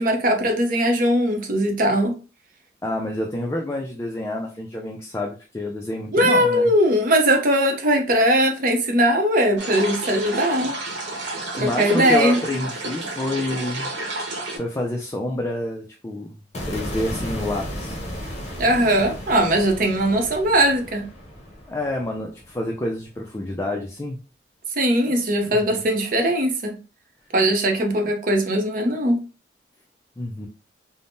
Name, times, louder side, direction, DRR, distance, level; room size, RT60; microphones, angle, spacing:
voice 1, 0.0-2.1 6.1-10.8 11.6-12.4 18.6-21.1 24.8-26.8 27.3-29.2, equal, 50° right, 3 dB, 0.6 m, -20 dB
voice 2, 2.8-6.7 11.5-13.9 14.5-16.4 16.7-18.0 21.7-24.2 25.5-25.8 30.2-30.5, left 1 dB, 15° left, 1 dB, 0.3 m, -28 dB
sound 1, 9.6-14.6, right 2 dB, 85° right, 0.9 m, -30 dB
sound 2, 16.5-22.8, equal, 40° left, 0.9 m, -34 dB
3.4 x 2.0 x 2.6 m, 0.35 s
head